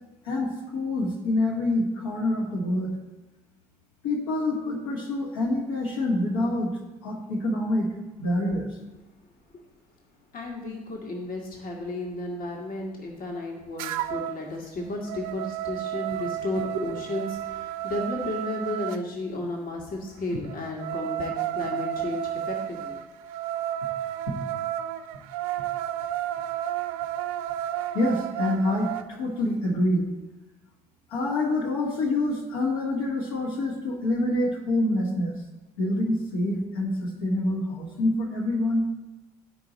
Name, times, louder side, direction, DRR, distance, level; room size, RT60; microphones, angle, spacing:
voice 1, 0.2-2.9 4.0-6.7 7.0-7.9 8.2-8.7 27.9-28.9 29.2-30.0 31.1-35.3 35.8-38.8, left 1 dB, 70° left, -3 dB, 1.6 m, -26 dB
voice 2, 10.3-23.0, left 2 dB, 45° left, 0 dB, 1.5 m, -33 dB
sound 1, 13.8-14.4 14.8-19.0 20.5-29.1, right 12 dB, 65° right, 0.4 m, -32 dB
12.0 x 4.9 x 4.0 m, 1.1 s
figure-of-eight pair, 55°, 20 cm